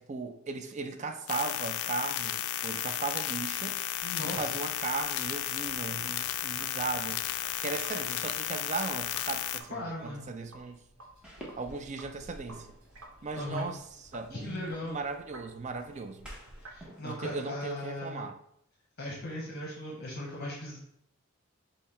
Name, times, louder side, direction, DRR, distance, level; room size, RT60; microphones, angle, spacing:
voice 1, 0.0-3.8 4.2-7.2 7.6-10.8 11.6-12.7 13.2-13.8 14.1-16.3 17.0-18.4, right 4 dB, 35° right, 0.4 m, -37 dB
sound 1, 1.3-9.6, left 11 dB, 80° left, 0.3 m, -34 dB
voice 2, 4.0-4.6 9.7-10.2 13.3-13.7 14.3-15.0 16.6-18.3 19.0-20.8, left 1 dB, 50° left, 0.8 m, -38 dB
Sink (filling or washing), 4.0-16.9, right 1 dB, 85° right, 1.0 m, -53 dB
sound 2, 11.2-17.2, equal, 5° right, 0.9 m, -53 dB
5.5 x 2.1 x 4.2 m
head